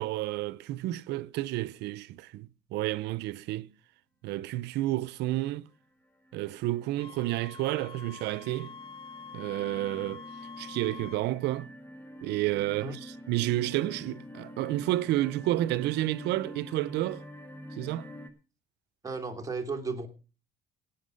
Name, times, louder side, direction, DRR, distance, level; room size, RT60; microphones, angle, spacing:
voice 1, 0.0-3.7 4.2-5.7 6.3-8.7 9.3-10.2 10.6-11.7 12.2-17.2 17.8-18.1, right 16 dB, 85° right, 0.6 m, -30 dB
sound 1, 5.1-5.6 6.0-18.3, equal, 10° left, 1.8 m, -47 dB
Wind instrument woodwind instrument, 7.0-11.3, left 6 dB, 35° left, 1.0 m, -46 dB
voice 2, 19.0-20.1, right 4 dB, 20° right, 2.7 m, -34 dB
17.5 x 5.9 x 6.3 m
cardioid pair, 110°, 17 cm